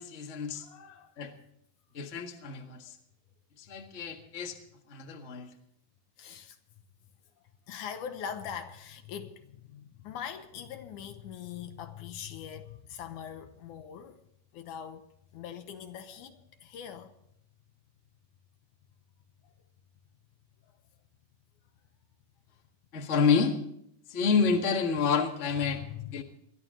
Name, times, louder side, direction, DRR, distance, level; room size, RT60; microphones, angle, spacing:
voice 1, 0.0-0.6 1.2-1.3 1.9-2.9 3.6-4.6 4.9-5.5 22.9-23.6 24.1-25.8 26.1-26.2, left 5 dB, 35° left, 1.2 m, -28 dB
voice 2, 0.6-1.1 6.2-6.6 7.7-14.2 14.5-15.1 15.3-17.1 19.4-19.5 25.7-26.2, left 8 dB, 75° left, 2.2 m, -42 dB
22.0 x 13.0 x 3.8 m
omnidirectional pair, 3.9 m